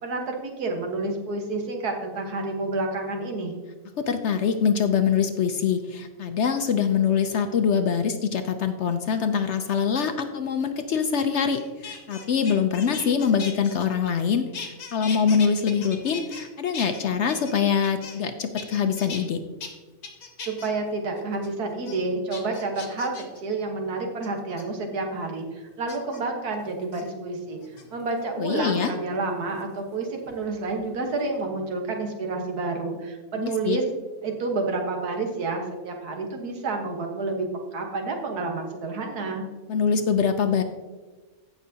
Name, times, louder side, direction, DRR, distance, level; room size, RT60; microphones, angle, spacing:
voice 1, 0.0-3.5 20.4-27.6 27.9-33.8 34.2-37.5 37.7-39.5, right 3 dB, 90° right, 2 dB, 1.8 m, -29 dB
voice 2, 4.0-19.4 28.4-28.9 33.4-33.8 39.7-40.6, left 7 dB, 60° left, 8 dB, 0.8 m, -24 dB
sound 1, 11.5-14.3 14.5-16.5 16.7-18.3 18.6-19.2 19.6-19.7 20.0-20.7 21.2-21.5 21.9-22.0 22.3-23.4 24.2-24.6 25.9-26.2 26.8-27.0 27.6-28.2 29.6-30.8 31.1-31.4, left 5 dB, 90° left, 1.8 m, -39 dB
16.0 x 6.1 x 2.8 m, 1.3 s
omnidirectional pair, 1.6 m